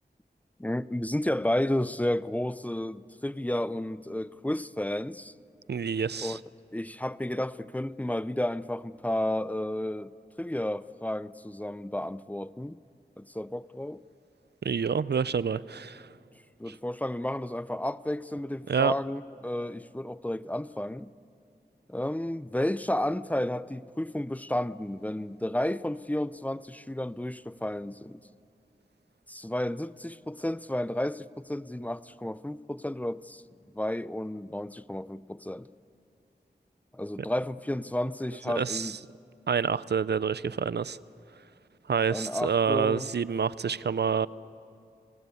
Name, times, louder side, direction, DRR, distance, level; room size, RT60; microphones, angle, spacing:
voice 1, 0.6-5.3 6.2-6.4 6.7-10.1 10.4-12.8 13.2-14.0 16.6-21.1 21.9-28.2 29.3-33.4 33.7-35.7 36.9-39.0 42.1-43.1, left 1 dB, 10° left, 0.5 m, -32 dB
voice 2, 5.7-6.4 14.6-16.1 16.7-16.8 18.7-18.9 38.6-38.9 39.5-41.0 41.9-44.3, right 6 dB, 75° right, 0.5 m, -27 dB
28.0 x 19.0 x 8.4 m
wide cardioid pair, 55°, 17 cm